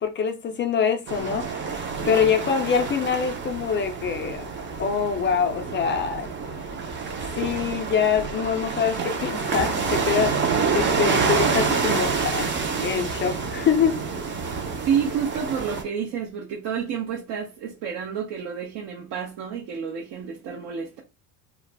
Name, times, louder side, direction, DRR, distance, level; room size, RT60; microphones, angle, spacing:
voice 1, 0.0-1.7 2.1-4.4 4.8-6.3 7.4-12.5 12.8-14.0, left 7 dB, 25° left, 0.3 m, -24 dB
sound 1, 1.1-15.8, right 5 dB, 25° right, 0.5 m, -27 dB
voice 2, 14.8-21.0, right 7 dB, 65° right, 0.8 m, -29 dB
2.3 x 2.0 x 3.3 m
supercardioid pair, 100°, 46 cm